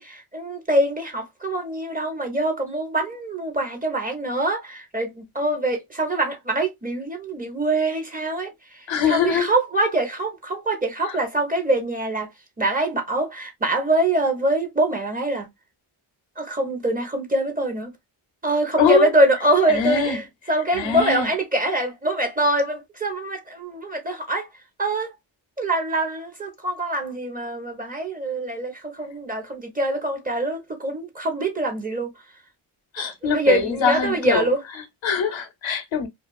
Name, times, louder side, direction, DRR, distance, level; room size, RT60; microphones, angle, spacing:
voice 1, 0.0-12.3 12.6-15.5 16.4-17.9 18.4-24.5 24.8-25.1 25.6-32.1 33.0-34.6, right 1 dB, 15° right, 0.8 m, -24 dB
voice 2, 8.9-9.5 18.8-19.1 19.7-20.2 20.7-21.3 32.9-34.5 34.8-36.1, left 6 dB, 70° left, 0.8 m, -23 dB
2.4 x 2.4 x 2.3 m
cardioid pair, 80°, 48 cm